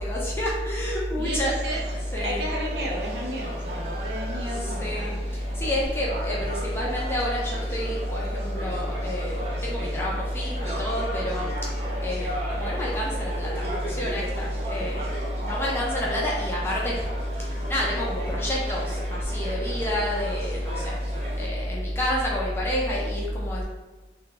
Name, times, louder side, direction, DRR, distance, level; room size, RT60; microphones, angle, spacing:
voice 1, 0.0-1.5 2.0-2.5 4.5-9.4 9.6-17.1 17.4-23.6, equal, 15° left, -5 dB, 0.5 m, -28 dB
voice 2, 1.2-1.8 2.2-5.2, right 1 dB, 70° right, -2 dB, 0.7 m, -33 dB
sound 1, 1.6-21.5, right 1 dB, 35° right, 0.6 m, -37 dB
2.9 x 2.3 x 3.6 m, 1.2 s
head